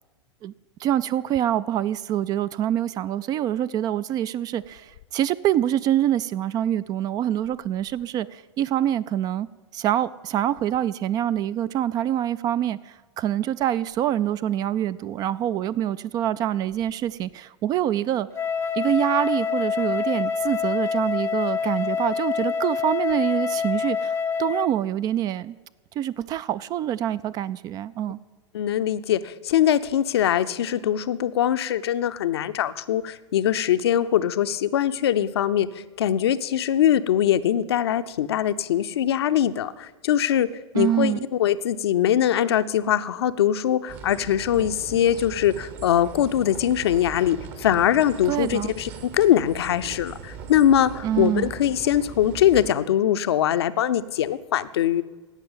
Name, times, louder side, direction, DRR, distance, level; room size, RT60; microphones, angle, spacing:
voice 1, 0.8-9.5 9.7-18.3 18.7-25.6 26.0-28.2 40.7-41.2 48.3-48.7 51.0-51.5, right 11 dB, 25° right, 17 dB, 0.3 m, -25 dB
Wind instrument woodwind instrument, 18.3-24.8, left 6 dB, 15° left, 0.7 m, -26 dB
voice 2, 28.5-35.7 36.0-40.5 40.7-55.0, left 10 dB, 60° left, 12 dB, 0.6 m, -22 dB
sound 1, 43.9-52.7, right 6 dB, 40° right, 1.3 m, -40 dB
16.5 x 6.1 x 9.0 m, 1.3 s
figure-of-eight pair, 90°, 15 cm